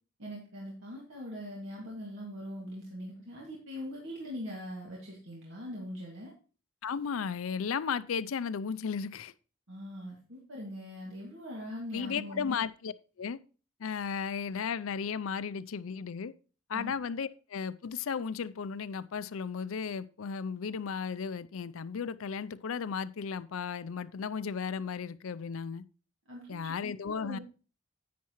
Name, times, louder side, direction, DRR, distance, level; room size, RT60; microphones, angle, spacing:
voice 1, 0.2-6.3 9.7-12.5 16.7-16.9 26.3-26.7 27.1-27.4, equal, 75° right, 2.2 m, -42 dB
voice 2, 6.8-9.3 11.9-13.4 13.8-16.3 16.7-25.8 26.5-27.4, left 6 dB, 85° left, 0.5 m, -35 dB
10.5 x 8.3 x 3.0 m
head